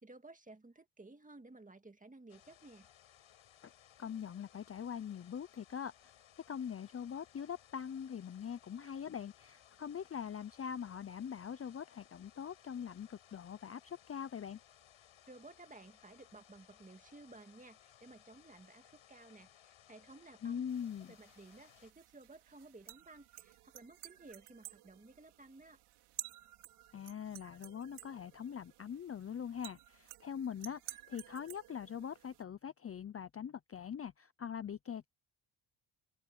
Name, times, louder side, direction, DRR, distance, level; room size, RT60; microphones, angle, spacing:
voice 1, 0.0-2.9 15.3-20.7 21.1-25.8, right 2 dB, 15° right, 2.1 m, -56 dB
sound 1, 2.3-21.9, left 11 dB, 70° left, 7.0 m, -63 dB
voice 2, 4.0-6.1 6.5-14.6 20.4-21.1 26.9-35.1, left 8 dB, 30° left, 0.6 m, -43 dB
sound 2, 20.7-32.4, right 14 dB, 90° right, 4.6 m, -53 dB
open air
cardioid pair, 95°, 50 cm